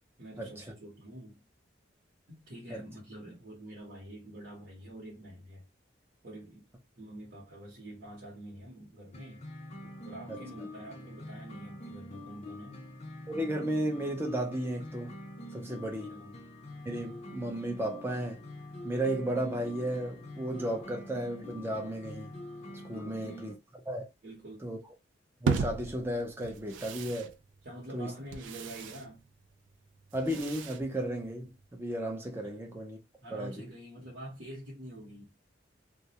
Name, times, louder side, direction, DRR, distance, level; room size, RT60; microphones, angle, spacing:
voice 1, 0.2-1.4 2.3-5.7 6.2-9.5 9.8-12.9 15.8-16.4 23.0-23.5 24.2-24.7 27.6-29.3 32.4-32.6 33.2-35.3, right 1 dB, 55° right, 0.9 m, -47 dB
sound 1, 9.1-23.5, left 1 dB, 35° left, 0.4 m, -45 dB
voice 2, 13.3-15.1 15.5-16.1 16.9-18.4 18.8-22.3 22.8-23.5 23.9-24.0 24.6-24.8 25.4-27.4 27.9-28.1 30.1-33.0 33.3-33.6, right 1 dB, 10° right, 0.5 m, -34 dB
sound 2, 25.5-31.7, right 5 dB, 80° right, 0.3 m, -37 dB
2.3 x 2.0 x 2.8 m
head